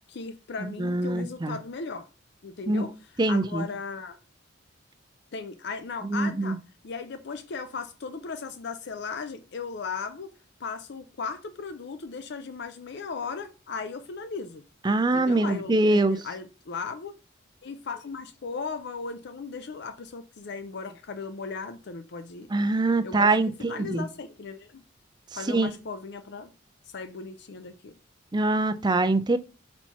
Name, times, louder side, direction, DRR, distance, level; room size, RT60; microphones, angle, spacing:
voice 1, 0.1-2.1 2.4-4.2 5.3-6.6 6.8-10.3 10.6-14.6 15.1-17.1 17.6-22.5 23.0-24.8 25.4-26.5 26.9-28.0, left 4 dB, 55° left, 0.5 m, -37 dB
voice 2, 0.6-1.6 2.7-2.8 3.2-3.7 6.1-6.5 14.8-16.2 22.5-24.0 25.5-25.7 28.3-29.4, right 2 dB, 20° right, 0.4 m, -24 dB
4.5 x 4.3 x 5.5 m
head